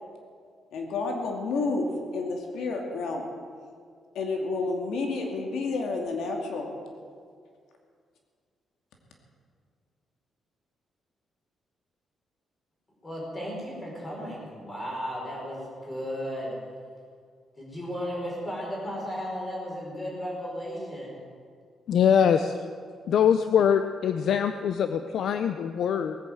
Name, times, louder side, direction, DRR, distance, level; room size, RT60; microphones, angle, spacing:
voice 1, 0.7-3.2 4.1-6.7, left 3 dB, 80° left, 2 dB, 2.4 m, -30 dB
voice 2, 13.0-16.5 17.6-21.2, equal, 15° left, -3 dB, 5.2 m, -35 dB
voice 3, 21.9-22.6 23.1-26.2, left 8 dB, 65° left, 9 dB, 0.6 m, -23 dB
19.5 x 9.1 x 7.8 m, 2.1 s
cardioid pair, 160°, 0 cm